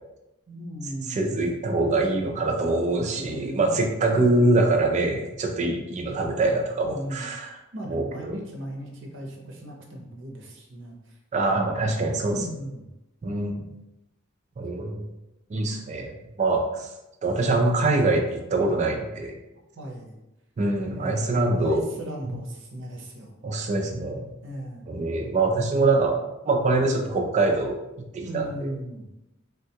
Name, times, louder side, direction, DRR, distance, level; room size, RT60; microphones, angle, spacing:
voice 1, 0.5-1.2 3.1-4.4 6.8-7.3 7.7-11.2 12.3-12.9 19.8-20.2 20.8-23.3 24.4-24.9 28.2-29.1, right 1 dB, 65° right, 0 dB, 0.7 m, -37 dB
voice 2, 1.1-7.5 7.9-8.3 11.3-12.4 13.2-13.7 14.6-15.0 15.5-16.9 17.2-19.4 20.6-21.8 22.2-22.3 23.4-24.3 24.9-26.2 26.4-27.8 28.1-28.7, right 2 dB, 35° right, 3 dB, 0.3 m, -24 dB
3.4 x 2.2 x 2.8 m, 0.94 s
head